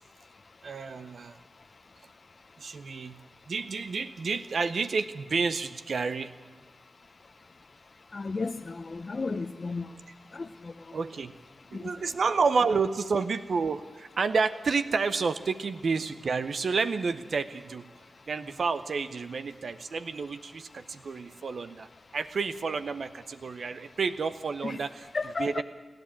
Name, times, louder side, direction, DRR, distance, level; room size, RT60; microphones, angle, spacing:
voice 1, 0.6-1.4 2.6-3.2 3.5-6.3 10.9-11.3 11.7-17.9 18.3-25.1 25.4-25.6, right 4 dB, 70° right, 0.7 m, -30 dB
voice 2, 8.1-9.8 24.6-24.8 25.1-25.6, left 3 dB, 50° left, 0.6 m, -33 dB
28.5 x 10.5 x 8.7 m
cardioid pair, 50°, 0 cm